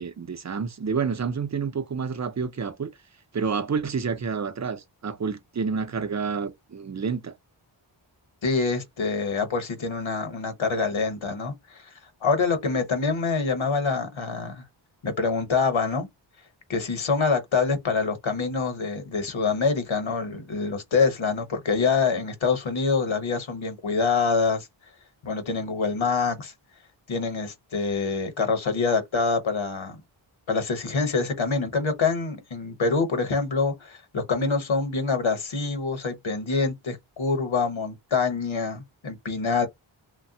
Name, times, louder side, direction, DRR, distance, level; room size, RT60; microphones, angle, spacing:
voice 1, 0.0-2.9 3.3-7.3, right 5 dB, 35° right, 0.6 m, -29 dB
voice 2, 8.4-11.9 12.2-14.6 15.0-16.1 16.7-24.7 25.2-26.5 27.1-30.0 30.5-39.7, left 4 dB, 70° left, 1.0 m, -25 dB
3.2 x 2.2 x 2.7 m
wide cardioid pair, 75°, 49 cm